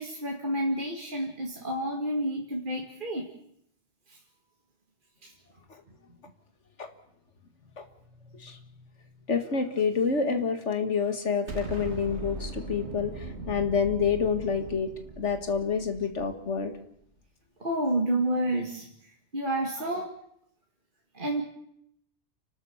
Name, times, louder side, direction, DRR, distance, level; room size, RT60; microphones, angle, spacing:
voice 1, 0.0-3.3 4.1-4.2 5.2-5.3 17.6-18.9 19.3-20.1 21.1-21.4, right 1 dB, 45° right, 0 dB, 2.3 m, -29 dB
voice 2, 9.3-14.9 15.2-16.7, left 5 dB, 75° left, 7 dB, 2.2 m, -28 dB
Explosion, 11.5-16.6, right 2 dB, 65° right, 2.5 m, -39 dB
29.5 x 12.5 x 7.3 m, 0.72 s
omnidirectional pair, 1.2 m